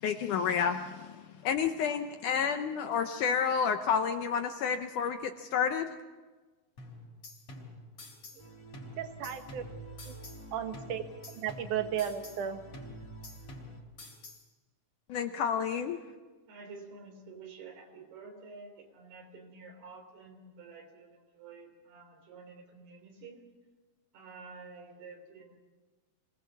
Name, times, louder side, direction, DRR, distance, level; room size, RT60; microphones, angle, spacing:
voice 1, 0.0-5.9 15.1-16.0, left 7 dB, 75° left, 7 dB, 2.0 m, -30 dB
sound 1, 6.8-8.5 8.7-10.5 10.7-12.5 12.7-14.5, left 2 dB, 40° left, 5.3 m, -48 dB
sound 2, 8.4-13.8, right 3 dB, 15° left, 1.1 m, -49 dB
voice 2, 9.0-9.6 10.1-10.2 10.5-11.0 11.4-12.6, right 9 dB, 60° right, 7 dB, 2.6 m, -34 dB
voice 3, 16.5-23.5 24.1-25.6, right 4 dB, 85° right, 4 dB, 5.4 m, -50 dB
26.0 x 19.0 x 7.3 m, 1.3 s
omnidirectional pair, 4.4 m